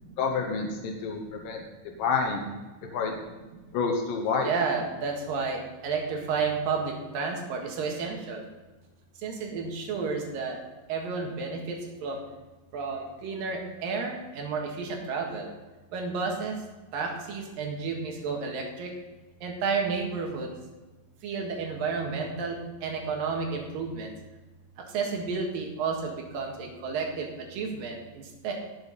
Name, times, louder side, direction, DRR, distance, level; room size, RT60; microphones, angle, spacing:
voice 1, 0.2-1.6 2.0-2.5 2.9-3.1 3.7-4.5, left 5 dB, 80° left, 1 dB, 2.8 m, -28 dB
voice 2, 4.4-8.4 9.2-10.6 10.9-12.2 12.7-15.5 15.9-16.6 16.9-18.9 19.4-20.6 21.2-24.1 24.8-28.5, right 4 dB, 90° right, 1 dB, 3.4 m, -32 dB
18.5 x 6.9 x 4.1 m, 1.2 s
omnidirectional pair, 3.9 m